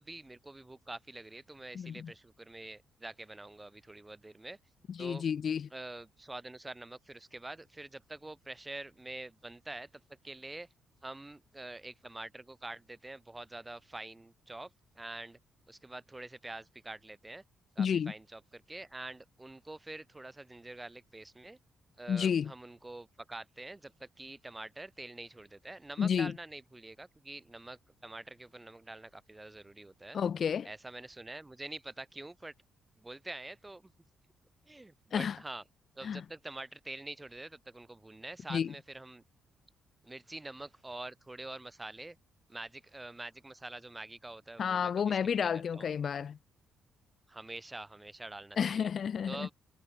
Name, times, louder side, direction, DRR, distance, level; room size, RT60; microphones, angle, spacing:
voice 1, 0.0-4.6 5.0-5.2 5.7-9.9 10.2-10.7 11.0-14.7 15.0-15.4 15.7-17.4 17.8-21.6 22.0-30.2 30.6-32.5 33.0-33.9 34.7-35.6 36.0-39.2 40.0-42.2 42.5-45.9 47.3-48.9 49.3-49.5, right 2 dB, 15° right, 5.5 m, -46 dB
voice 2, 1.7-2.1 5.0-5.7 17.8-18.1 22.1-22.5 26.0-26.3 30.1-30.7 35.1-35.4 36.0-36.2 38.5-38.7 44.6-46.4 48.6-49.5, left 7 dB, 50° left, 2.6 m, -31 dB
cardioid pair, 90°, 0 cm